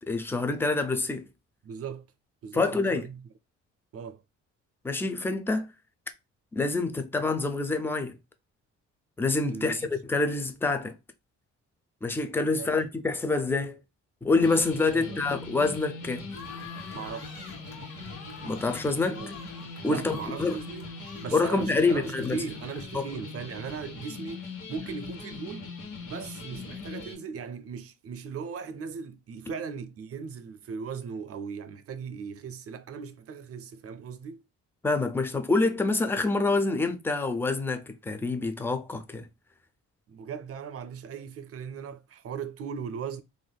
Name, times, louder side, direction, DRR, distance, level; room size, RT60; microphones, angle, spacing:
voice 1, 0.1-1.3 2.5-3.0 4.8-5.7 6.5-8.2 9.2-11.0 12.0-13.8 14.2-16.2 18.4-19.2 19.8-20.6 21.3-22.4 22.9-23.1 34.8-39.2, left 3 dB, 10° left, 0.4 m, -26 dB
voice 2, 1.6-2.0 2.4-3.2 3.9-4.2 9.5-9.9 12.6-12.7 14.9-15.2 16.9-17.5 19.1-19.3 19.9-20.9 21.2-25.7 26.0-34.4 40.1-43.2, right 6 dB, 50° right, 0.5 m, -38 dB
sound 1, 14.4-27.1, left 3 dB, 75° left, 1.3 m, -41 dB
sound 2, 16.3-23.2, left 5 dB, 60° left, 1.4 m, -48 dB
3.5 x 2.4 x 2.2 m
cardioid pair, 90°, 30 cm